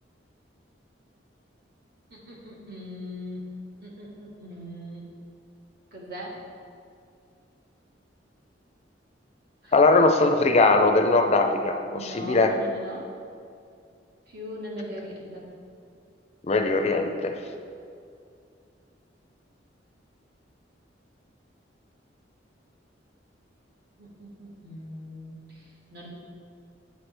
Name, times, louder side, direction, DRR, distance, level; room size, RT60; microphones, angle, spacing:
voice 1, 2.1-5.0 5.9-6.3 9.6-9.7 11.9-13.1 14.3-15.4 24.0-25.6 25.9-26.1, equal, 60° right, -3 dB, 1.5 m, -40 dB
voice 2, 9.7-12.5 16.5-17.4, left 3 dB, 35° left, 5 dB, 0.4 m, -20 dB
8.2 x 6.1 x 3.3 m, 2.4 s
head